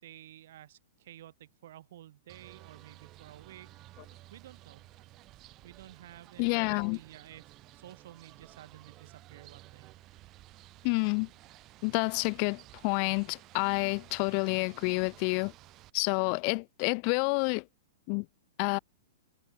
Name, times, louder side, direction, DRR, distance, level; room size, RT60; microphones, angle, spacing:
voice 1, 0.0-3.7 4.3-4.8 5.6-9.9, right 12 dB, 65° right, 3.8 m, -52 dB
sound 1, 2.3-15.9, right 17 dB, 35° right, 0.5 m, -54 dB
voice 2, 6.4-7.0 10.8-11.3 11.8-15.5 15.9-17.6 18.1-18.3 18.6-18.8, left 40 dB or more, 45° left, 0.3 m, -29 dB
hypercardioid pair, 130°, 0 cm